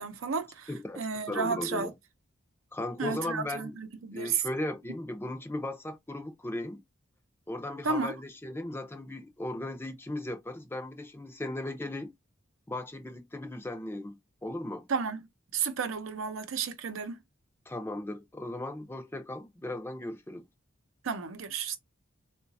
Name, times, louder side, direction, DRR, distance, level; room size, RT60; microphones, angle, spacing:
voice 1, 0.0-0.7 1.0-1.9 3.0-4.4 7.8-8.2 14.9-15.2 15.5-17.2 21.0-21.8, right 5 dB, 80° right, 0.6 m, -32 dB
voice 2, 0.7-1.9 2.7-3.8 4.1-6.8 7.5-12.1 12.7-14.9 17.7-20.5, left 1 dB, 10° left, 0.5 m, -37 dB
3.8 x 2.2 x 2.6 m
head